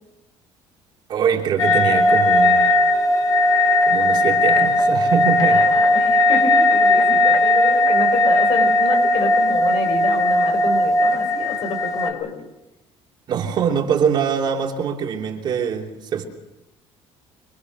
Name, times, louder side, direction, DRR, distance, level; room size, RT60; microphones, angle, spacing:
voice 1, 1.1-2.7 3.9-5.7 13.3-16.3, right 7 dB, 40° right, 1 dB, 3.2 m, -23 dB
sound 1, 1.6-12.1, left 1 dB, 30° left, 4.3 m, -17 dB
voice 2, 5.5-12.3, left 4 dB, 50° left, 6 dB, 6.0 m, -28 dB
26.5 x 23.5 x 6.5 m, 0.95 s
cardioid pair, 175°, 12 cm